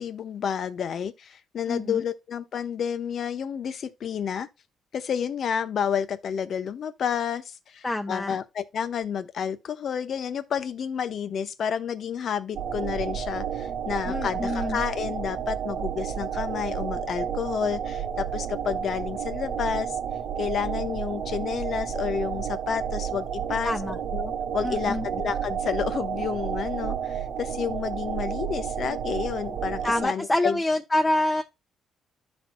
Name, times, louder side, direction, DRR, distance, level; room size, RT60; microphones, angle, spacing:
voice 1, 0.0-4.5 4.9-20.0 20.4-23.7 24.1-30.6, left 7 dB, 60° left, 0.8 m, -30 dB
voice 2, 1.7-2.0 7.8-8.4 14.1-14.8 23.6-24.0 24.6-25.1 29.8-31.4, left 1 dB, 15° left, 0.8 m, -26 dB
sound 1, 12.5-30.1, right 8 dB, 80° right, 1.2 m, -31 dB
13.0 x 4.4 x 2.2 m
cardioid pair, 90°, 0 cm